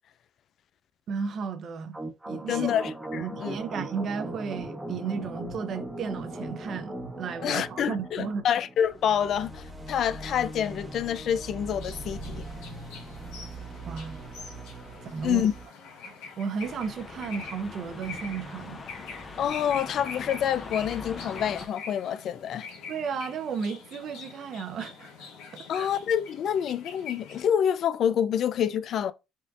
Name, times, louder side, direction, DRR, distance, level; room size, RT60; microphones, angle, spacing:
voice 1, 1.1-2.0 2.3-2.7 3.1-8.5 13.9-14.2 15.0-15.5 16.0-18.8 22.9-25.9, right 6 dB, 55° right, 0.6 m, -34 dB
sound 1, 1.9-15.7, right 2 dB, 15° right, 0.9 m, -39 dB
voice 2, 2.5-3.6 7.4-12.4 15.2-15.5 19.4-22.7 25.7-29.1, left 9 dB, 60° left, 0.3 m, -27 dB
sound 2, 11.8-27.4, left 5 dB, 80° left, 1.1 m, -44 dB
sound 3, 16.6-21.7, left 3 dB, 30° left, 0.7 m, -42 dB
5.3 x 2.5 x 2.4 m
supercardioid pair, 85°, 0 cm